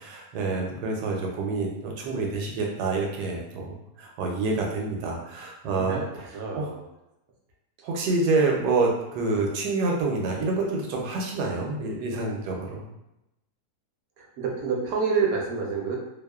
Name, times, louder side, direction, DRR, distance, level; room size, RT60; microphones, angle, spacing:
voice 1, 0.0-6.0 6.6-6.7 7.8-12.9, right 3 dB, 85° right, 0 dB, 1.2 m, -27 dB
voice 2, 5.8-6.8 14.2-16.0, right 5 dB, 70° right, -1 dB, 0.9 m, -28 dB
2.9 x 2.0 x 2.2 m, 0.89 s
omnidirectional pair, 1.8 m